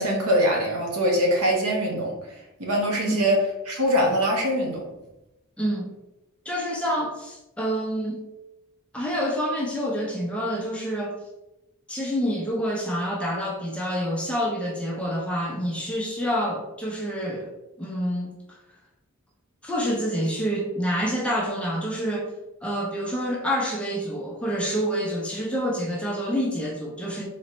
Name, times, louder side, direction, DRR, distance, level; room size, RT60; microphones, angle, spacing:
voice 1, 0.0-2.1 2.6-3.4 3.7-4.8, equal, 85° right, -1 dB, 1.1 m, -23 dB
voice 2, 5.6-5.9 6.4-8.2 8.9-11.1 11.9-17.5 17.8-18.6 19.6-22.3 22.6-27.2, equal, 5° left, -2 dB, 0.6 m, -27 dB
4.2 x 3.0 x 3.0 m, 0.93 s
head